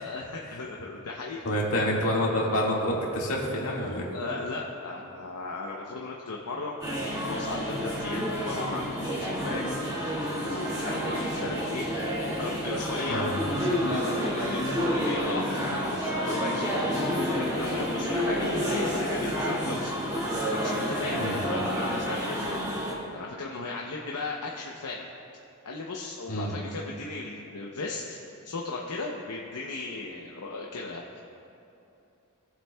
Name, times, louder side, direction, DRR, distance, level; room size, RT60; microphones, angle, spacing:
voice 1, 0.0-1.5 4.1-19.9 20.5-25.1 25.6-28.2 28.4-31.2, left 3 dB, 90° left, -1 dB, 0.8 m, -37 dB
voice 2, 1.5-4.1 13.1-13.3 21.2-21.4 26.3-26.5, equal, 70° left, -3 dB, 1.8 m, -27 dB
sound 1, 6.8-22.9, equal, 15° right, 2.0 m, -29 dB
20.0 x 7.6 x 2.3 m, 2.9 s
head